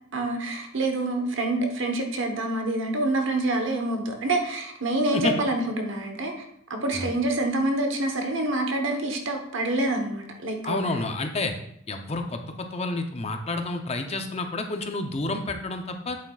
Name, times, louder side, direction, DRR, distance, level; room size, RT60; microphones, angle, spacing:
voice 1, 0.1-6.3 6.7-11.0, right 2 dB, 60° right, 4 dB, 1.1 m, -27 dB
voice 2, 10.6-11.5 11.9-16.2, left 2 dB, 30° left, 5 dB, 0.7 m, -29 dB
8.6 x 7.7 x 2.4 m, 0.73 s
head